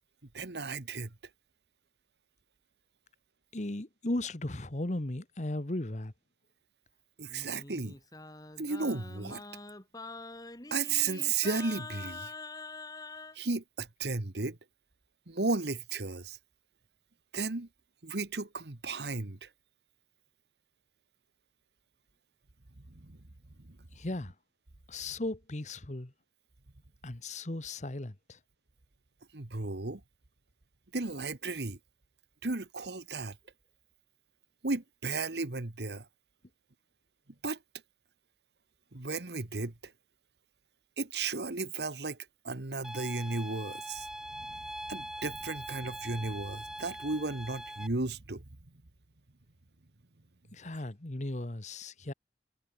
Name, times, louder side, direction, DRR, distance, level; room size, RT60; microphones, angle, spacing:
voice 1, 0.3-1.1 7.2-8.0 8.6-9.4 10.7-12.3 13.3-14.6 15.3-16.4 17.3-17.7 18.0-19.5 22.9-23.2 29.3-30.0 30.9-31.8 32.4-33.4 34.6-36.1 37.4-37.6 38.9-39.9 41.0-48.5, right 3 dB, 70° right, 1.5 m, -34 dB
voice 2, 3.5-6.1 24.0-24.3 24.9-26.1 27.0-28.4 50.5-52.1, left 1 dB, 40° left, 1.3 m, -36 dB
Singing, 7.3-13.4, left 3 dB, 20° left, 3.4 m, -45 dB
sound 1, 42.8-47.9, right 1 dB, 5° right, 1.1 m, -42 dB
head